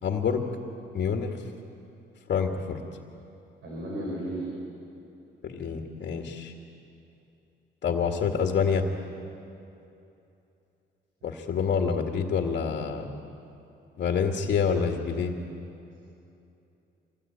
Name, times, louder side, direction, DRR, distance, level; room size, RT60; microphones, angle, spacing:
voice 1, 0.0-0.4 0.9-1.4 2.3-2.8 5.4-6.5 7.8-8.9 11.2-13.1 14.0-15.3, left 6 dB, 55° left, 3 dB, 2.0 m, -27 dB
voice 2, 3.6-4.5, right 1 dB, 80° right, -4 dB, 5.7 m, -33 dB
26.0 x 18.5 x 8.8 m, 2.8 s
cardioid pair, 90°, 20 cm